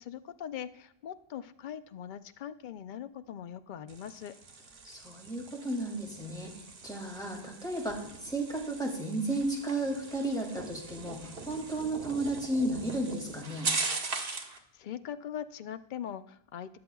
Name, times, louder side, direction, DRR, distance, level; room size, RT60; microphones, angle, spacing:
voice 1, 0.0-4.3 14.4-16.8, left 9 dB, 60° left, 12 dB, 0.6 m, -41 dB
sound 1, 3.9-14.6, right 4 dB, 65° right, 1.3 m, -40 dB
voice 2, 4.8-13.7, right 1 dB, 5° left, -1 dB, 2.3 m, -33 dB
15.5 x 10.5 x 2.3 m, 0.69 s
omnidirectional pair, 1.0 m